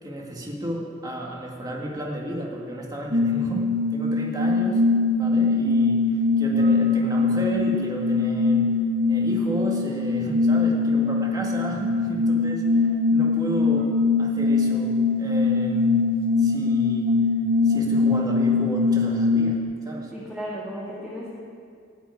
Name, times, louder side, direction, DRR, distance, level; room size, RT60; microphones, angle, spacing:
voice 1, 0.0-4.8 5.2-8.7 9.1-13.9 14.2-16.1 16.4-17.3 17.6-19.6 19.8-20.1, equal, 20° right, -2 dB, 2.0 m, -33 dB
sound 1, 3.1-19.6, left 3 dB, 50° right, 1.0 m, -22 dB
voice 2, 19.9-21.3, equal, ahead, -8 dB, 2.1 m, -35 dB
17.0 x 6.1 x 9.5 m, 2.2 s
head